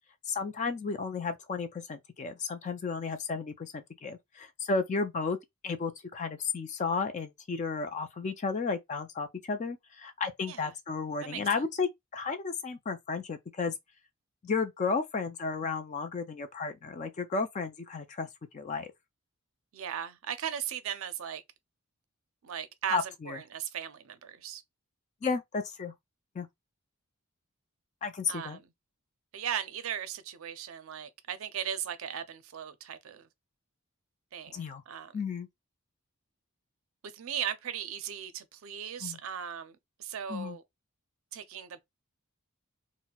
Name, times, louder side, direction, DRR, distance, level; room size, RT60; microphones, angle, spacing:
voice 1, 0.3-5.4 5.6-13.7 14.4-18.3 18.5-18.9 22.9-23.4 25.2-25.9 26.4-26.5 28.0-28.6 34.5-34.8 35.1-35.5 39.0-39.2 40.3-40.6, left 4 dB, 30° left, 0.3 m, -33 dB
voice 2, 19.7-21.4 22.4-24.6 28.3-28.7 29.3-33.3 34.3-35.1 37.1-40.6 41.3-41.8, right 9 dB, 65° right, 0.4 m, -37 dB
4.1 x 2.0 x 2.2 m
head